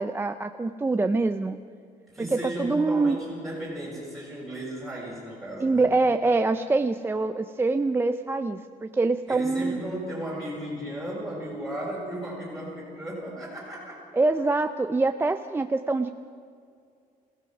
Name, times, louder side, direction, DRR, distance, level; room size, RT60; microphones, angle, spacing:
voice 1, 0.0-1.6 2.2-3.2 5.6-9.8 14.1-16.1, right 3 dB, 15° right, 8 dB, 0.5 m, -25 dB
voice 2, 2.1-5.9 9.3-14.0, right 1 dB, ahead, -8 dB, 6.8 m, -35 dB
27.0 x 16.5 x 6.0 m, 2.3 s
cardioid pair, 145°, 15 cm